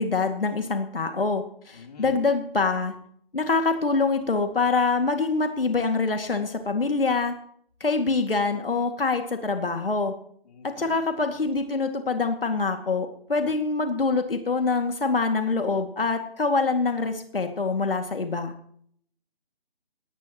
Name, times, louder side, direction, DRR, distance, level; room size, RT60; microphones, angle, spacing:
voice 1, 0.0-2.9 3.3-7.3 7.8-10.1 10.6-18.5, left 4 dB, 70° left, 5 dB, 2.3 m, -25 dB
voice 2, 1.7-2.2 10.4-11.0, left 4 dB, 45° left, 4 dB, 2.9 m, -47 dB
21.0 x 18.0 x 3.0 m, 0.63 s
figure-of-eight pair, 160°, 29 cm